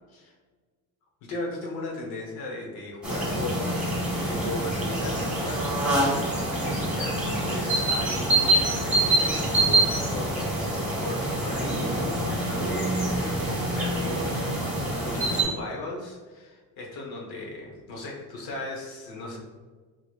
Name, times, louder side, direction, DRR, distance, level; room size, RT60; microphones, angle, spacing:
voice 1, 1.2-14.5 15.0-19.4, left 2 dB, 90° left, -1 dB, 1.0 m, -37 dB
sound 1, 3.0-15.4, right 1 dB, 5° right, 1.1 m, -26 dB
4.4 x 3.0 x 2.4 m, 1.4 s
cardioid pair, 140°, 36 cm